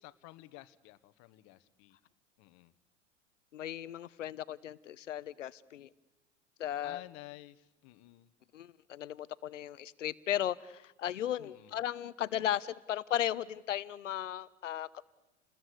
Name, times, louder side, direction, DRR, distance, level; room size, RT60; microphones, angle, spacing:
voice 1, 0.0-2.0 2.4-2.7 6.8-8.3 11.4-11.8, left 18 dB, 45° left, 15 dB, 1.4 m, -52 dB
voice 2, 3.5-5.9 6.6-7.0 8.5-15.0, left 11 dB, 75° left, 18 dB, 1.0 m, -36 dB
29.5 x 20.5 x 8.3 m, 1.1 s
hypercardioid pair, 95°, 37 cm